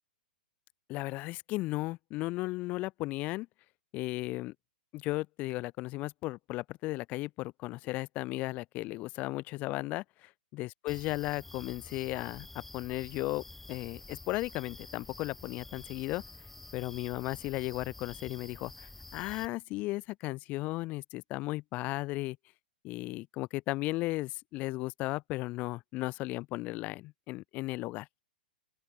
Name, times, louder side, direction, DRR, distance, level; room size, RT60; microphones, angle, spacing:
voice 1, 0.9-3.5 3.9-4.5 4.9-16.2 16.7-22.4 22.8-28.1, left 20 dB, 30° left, 0.8 m, -35 dB
sound 1, 10.9-19.5, left 2 dB, 5° left, 1.4 m, -49 dB
open air
figure-of-eight pair, 110°, 5 cm